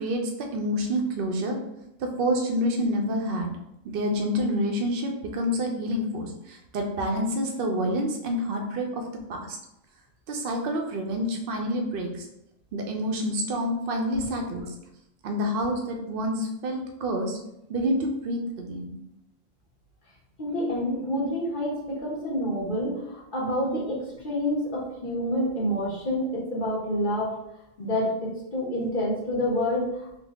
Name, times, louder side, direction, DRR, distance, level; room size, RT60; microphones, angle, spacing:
voice 1, 0.0-1.6 2.0-3.5 3.8-9.6 10.3-12.3 12.7-14.7 15.2-17.4 17.7-18.9, equal, 55° right, 3 dB, 0.7 m, -28 dB
voice 2, 20.4-27.3 27.8-30.1, equal, 45° left, -5 dB, 1.0 m, -28 dB
3.9 x 2.1 x 3.4 m, 0.85 s
omnidirectional pair, 1.3 m